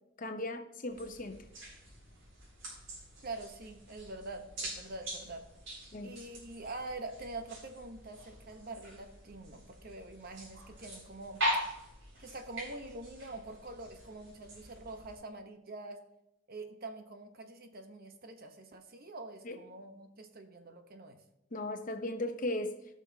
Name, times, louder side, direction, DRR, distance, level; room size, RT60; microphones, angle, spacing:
voice 1, 0.2-1.4 5.9-6.1 19.4-19.6 21.5-22.8, left 1 dB, 45° left, 7 dB, 0.8 m, -37 dB
sound 1, 0.9-15.2, equal, 65° right, 4.1 m, -42 dB
voice 2, 3.2-5.4 6.0-11.4 12.2-16.0 16.5-21.2, right 2 dB, 50° right, 6 dB, 1.0 m, -45 dB
16.5 x 6.1 x 2.8 m, 0.85 s
head